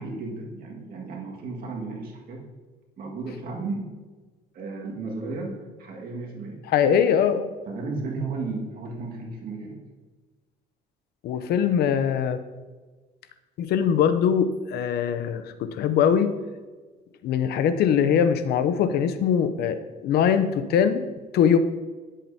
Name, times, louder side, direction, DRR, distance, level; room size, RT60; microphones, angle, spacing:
voice 1, 0.0-2.5 3.0-3.9 4.5-6.6 7.7-9.8, right 3 dB, 60° right, -1 dB, 1.8 m, -34 dB
voice 2, 6.7-7.4 11.2-12.4 13.6-16.3 17.2-21.0 21.3-21.6, left 8 dB, 70° left, 11 dB, 0.6 m, -22 dB
9.4 x 7.4 x 2.7 m, 1.3 s
cardioid pair, 110°, 17 cm